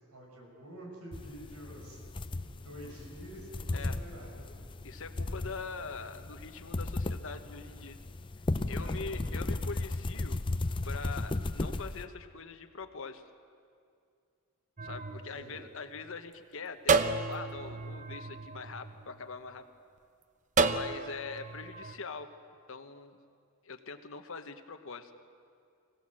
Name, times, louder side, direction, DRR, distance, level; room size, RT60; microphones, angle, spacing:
voice 1, 0.1-2.0 2.4-4.3 8.8-9.0 15.3-15.6, right 1 dB, 90° right, 0 dB, 6.2 m, -48 dB
sound 1, 1.1-12.0, left 2 dB, 20° left, 0.5 m, -35 dB
voice 2, 4.8-8.0 8.7-10.4 10.8-13.2 14.8-19.6 20.7-22.3 22.7-23.2 23.6-25.1, left 4 dB, 60° left, 8 dB, 1.2 m, -43 dB
sound 2, 14.8-16.2 16.9-19.4 20.6-22.0, right 4 dB, 35° right, 0.7 m, -32 dB
25.0 x 17.0 x 7.7 m, 2.3 s
head